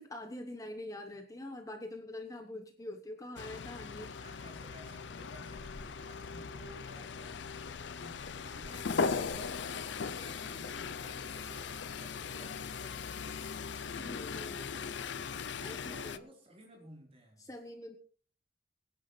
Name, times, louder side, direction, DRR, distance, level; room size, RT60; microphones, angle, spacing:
voice 1, 0.0-4.2 14.0-14.8 15.6-16.2 17.4-18.0, left 1 dB, 20° left, 5 dB, 1.1 m, -45 dB
sound 1, 3.4-16.2, left 5 dB, 65° left, 0.6 m, -39 dB
voice 2, 4.2-7.4 8.0-13.7 15.6-17.5, right 1 dB, 30° right, 0 dB, 4.1 m, -55 dB
23.0 x 10.0 x 3.3 m, 0.42 s
head